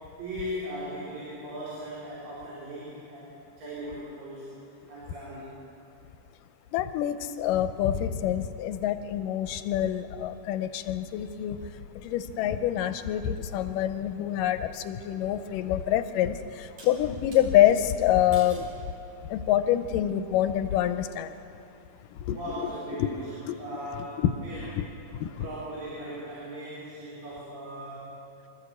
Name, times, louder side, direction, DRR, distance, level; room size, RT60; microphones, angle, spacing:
voice 1, 0.2-4.6 4.9-5.5 22.3-24.9 25.4-28.2, equal, 90° right, -8 dB, 5.6 m, -38 dB
voice 2, 6.7-11.6 12.0-18.7 19.2-21.3 22.1-22.4 23.0-23.1 23.5-23.6 24.2-24.3 24.8-24.9 25.2-25.5, left 11 dB, 85° left, 10 dB, 2.4 m, -26 dB
sound 1, 16.8-17.5 18.3-18.7 19.4-19.8, right 2 dB, 55° right, 4.9 m, -48 dB
24.5 x 14.0 x 8.3 m, 2.7 s
omnidirectional pair, 3.8 m